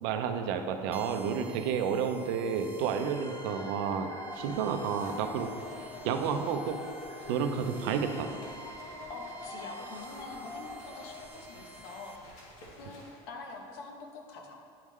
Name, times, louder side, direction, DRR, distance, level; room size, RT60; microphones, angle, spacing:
voice 1, 0.0-4.1 4.4-5.5 6.0-6.8 7.3-8.3, right 7 dB, 70° right, 6 dB, 0.5 m, -30 dB
sound 1, 0.9-12.2, right 3 dB, 15° right, 0.4 m, -50 dB
sound 2, 3.1-11.3, left 3 dB, 30° left, 0.6 m, -45 dB
sound 3, 4.3-13.7, left 1 dB, 65° left, 1.3 m, -54 dB
voice 2, 9.1-12.1 12.8-14.6, left 3 dB, 85° left, 1 dB, 0.9 m, -45 dB
9.3 x 3.6 x 3.2 m, 2.4 s
cardioid pair, 155°, 12 cm